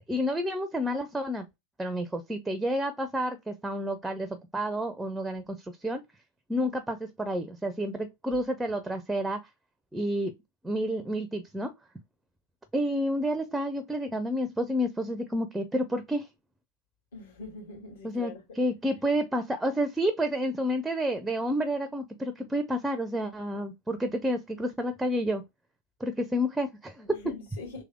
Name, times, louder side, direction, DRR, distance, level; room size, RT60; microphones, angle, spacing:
voice 1, 0.1-1.4 1.8-6.0 6.5-9.4 9.9-10.3 10.6-11.7 12.7-16.3 18.0-25.4 26.0-27.2, equal, 5° right, 0.5 m, -30 dB
voice 2, 17.1-18.4 27.1-27.8, left 3 dB, 60° left, 2.0 m, -42 dB
3.4 x 3.3 x 3.4 m
figure-of-eight pair, 90°, 0 cm